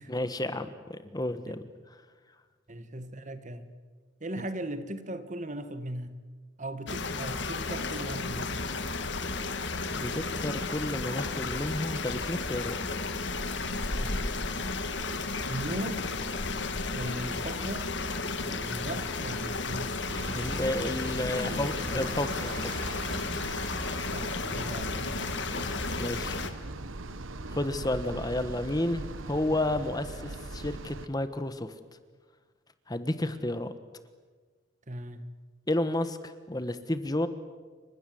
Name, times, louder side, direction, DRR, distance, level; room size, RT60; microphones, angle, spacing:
voice 1, 0.0-1.6 9.9-12.8 20.3-22.7 25.6-25.7 26.0-26.4 27.5-31.7 32.9-33.7 35.7-37.3, left 1 dB, 20° left, 11 dB, 1.3 m, -31 dB
voice 2, 2.7-3.7 4.2-6.2 6.6-8.6 13.9-14.2 15.4-16.1 16.9-18.0 18.4-20.0 21.2-22.1 24.1-25.1 34.9-35.3, right 1 dB, 40° right, 11 dB, 1.7 m, -38 dB
sound 1, 6.9-26.5, left 3 dB, 60° left, 2.0 m, -33 dB
sound 2, 20.1-31.1, right 2 dB, 85° right, 1.3 m, -40 dB
29.0 x 25.5 x 7.8 m, 1.4 s
head